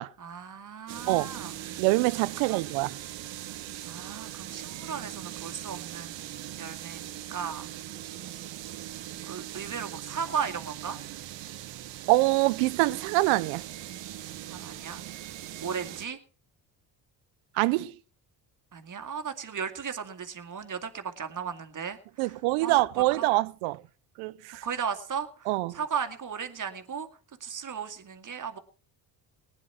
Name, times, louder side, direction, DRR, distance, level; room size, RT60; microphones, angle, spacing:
voice 1, 0.2-1.5 2.5-2.7 3.9-7.7 8.2-8.5 9.3-11.0 14.5-15.0 15.6-16.2 18.7-22.3 22.6-22.8 23.2-23.3 24.6-27.1 27.4-28.6, right 7 dB, 40° right, 2.1 m, -36 dB
sound 1, 0.9-16.1, right 13 dB, 65° right, 1.3 m, -40 dB
voice 2, 1.8-3.0 12.1-13.6 17.5-17.9 22.2-23.8 24.2-24.7 25.5-25.8, right 20 dB, 85° right, 0.7 m, -25 dB
19.0 x 10.0 x 4.4 m
supercardioid pair, 65°, 47 cm